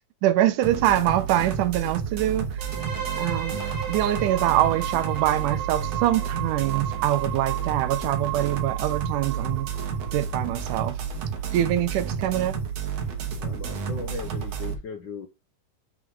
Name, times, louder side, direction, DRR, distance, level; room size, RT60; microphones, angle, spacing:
voice 1, 0.2-2.5 3.2-3.6 3.9-9.7 10.1-11.0 11.5-12.5, right 13 dB, 90° right, 2.3 m, -24 dB
sound 1, 0.6-14.7, right 6 dB, 60° right, 2.1 m, -31 dB
sound 2, 2.6-10.4, right 11 dB, 35° right, 0.9 m, -34 dB
voice 2, 13.4-15.3, left 5 dB, 80° left, 1.0 m, -37 dB
6.4 x 3.8 x 4.7 m
omnidirectional pair, 3.6 m